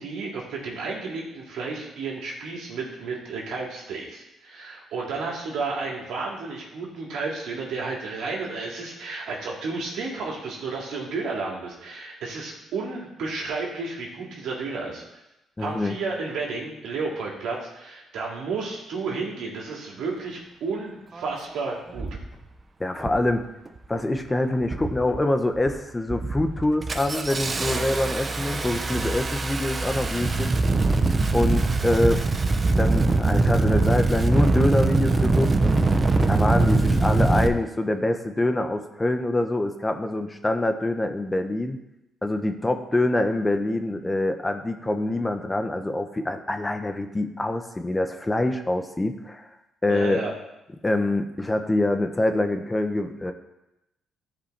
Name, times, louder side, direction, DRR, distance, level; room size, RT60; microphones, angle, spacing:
voice 1, 0.0-15.0 15.6-22.1 49.9-50.3, right 4 dB, 80° right, -3 dB, 2.4 m, -32 dB
voice 2, 15.6-16.0 22.8-23.4 23.9-30.5 31.3-32.2 32.8-35.8 36.3-41.8 42.2-49.5 49.8-50.2 50.8-53.3, left 1 dB, 15° left, 6 dB, 0.8 m, -25 dB
Engine starting, 21.1-21.2 22.0-22.3 23.0-23.3 23.7-24.2 24.6-25.2 25.6-25.8 26.1-37.5, right 3 dB, 30° right, 0.7 m, -23 dB
13.5 x 5.1 x 3.4 m, 0.90 s
cardioid pair, 90°, 0 cm